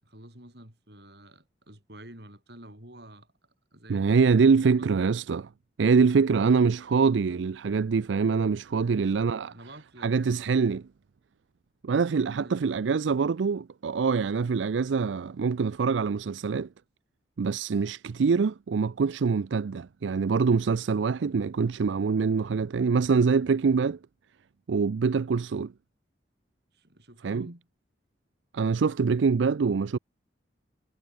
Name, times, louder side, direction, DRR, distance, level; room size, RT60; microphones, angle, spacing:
voice 1, 0.0-3.3 3.7-5.1 6.3-6.6 8.7-10.5 12.3-12.7 26.7-27.7, right 1 dB, 60° right, 7.1 m, -49 dB
voice 2, 3.9-5.4 5.8-9.5 10.0-10.8 11.8-16.7 17.4-24.0 24.7-25.7 27.2-27.5 28.5-30.0, right 5 dB, 85° right, 0.4 m, -24 dB
head